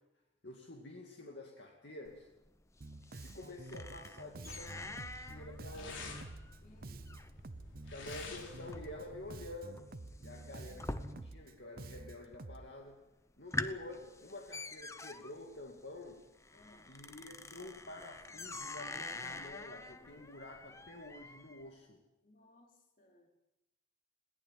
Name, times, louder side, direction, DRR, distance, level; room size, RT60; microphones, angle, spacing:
voice 1, 0.4-2.3 3.2-4.9 5.3-6.2 7.8-9.9 10.2-13.0 13.4-16.2 16.9-22.0, left 2 dB, 65° left, 1 dB, 2.5 m, -49 dB
sound 1, 2.1-11.6 11.9-12.5 12.9-13.0 13.3-21.6, left 2 dB, 15° left, 0.9 m, -46 dB
Bass guitar, 2.8-12.7, right 2 dB, 50° right, 0.8 m, -49 dB
sound 2, 4.4-9.5, left 3 dB, 90° left, 4.3 m, -51 dB
voice 2, 6.6-7.1 10.3-10.7 16.5-17.0 22.2-23.3, left 1 dB, 45° left, 1 dB, 4.6 m, -64 dB
21.0 x 18.5 x 9.1 m, 0.94 s
head